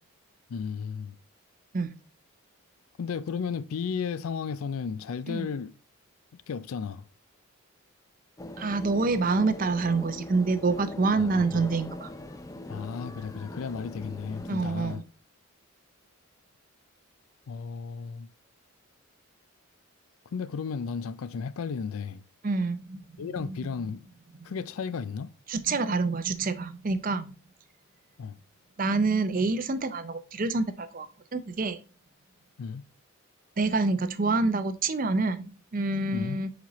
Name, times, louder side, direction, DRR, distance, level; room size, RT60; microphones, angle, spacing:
voice 1, 0.5-1.2 3.0-5.7 6.3-7.1 11.1-11.7 12.7-15.0 17.5-18.3 20.3-22.2 23.2-24.1 24.4-25.3 28.2-28.4 32.6-32.8 36.1-36.4, left 6 dB, 80° left, 0.4 m, -34 dB
sound 1, 8.4-15.0, left 1 dB, 15° left, 0.4 m, -41 dB
voice 2, 8.6-12.1 14.5-15.0 22.4-23.0 23.6-23.7 25.5-27.3 28.8-31.8 33.6-36.5, right 3 dB, 40° right, 0.5 m, -27 dB
7.4 x 4.2 x 3.0 m
head